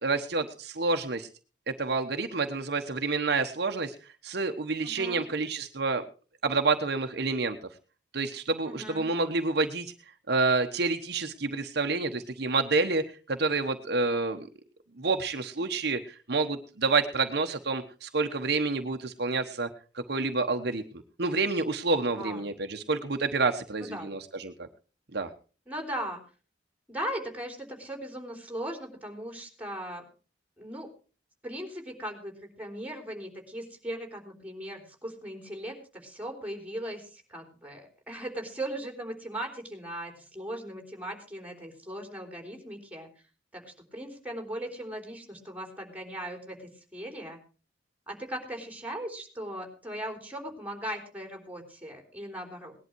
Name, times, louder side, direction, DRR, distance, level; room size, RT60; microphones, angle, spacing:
voice 1, 0.0-1.3 1.7-3.9 4.2-6.0 6.4-7.6 8.1-9.9 10.3-14.5 15.0-19.7 19.9-20.8 21.2-24.7 25.1-25.3, right 3 dB, 60° right, 6 dB, 1.1 m, -28 dB
voice 2, 4.8-5.2 8.7-9.1 22.2-22.4 23.8-24.1 25.7-26.2 26.9-30.0 30.6-30.9 31.4-43.1 43.5-47.4 48.1-52.8, right 1 dB, 10° right, 4 dB, 3.6 m, -38 dB
19.0 x 11.0 x 4.6 m, 0.37 s
head